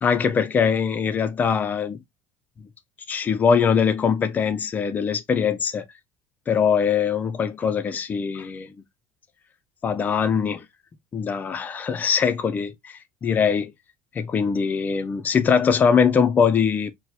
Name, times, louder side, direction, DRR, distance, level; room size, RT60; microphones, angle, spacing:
voice 1, 0.0-2.0 3.1-5.9 6.5-8.7 9.8-10.7 11.1-13.7 14.1-16.9, left 6 dB, 20° left, 0.3 m, -22 dB
4.2 x 2.0 x 2.3 m
cardioid pair, 165°, 8 cm